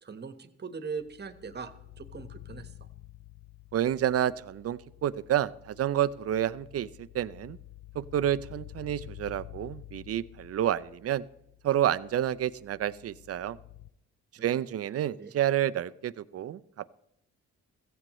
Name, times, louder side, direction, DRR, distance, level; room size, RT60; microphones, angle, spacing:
voice 1, 0.0-2.9 14.4-14.6 15.2-15.3, right 5 dB, 35° right, 10 dB, 1.3 m, -41 dB
sound 1, 1.0-13.9, left 15 dB, 60° left, 0.6 m, -50 dB
voice 2, 3.7-7.6 7.9-11.2 11.6-13.6 14.4-16.9, right 11 dB, 50° right, 15 dB, 0.6 m, -29 dB
16.0 x 15.0 x 3.1 m, 0.77 s
cardioid pair, 90°, 30 cm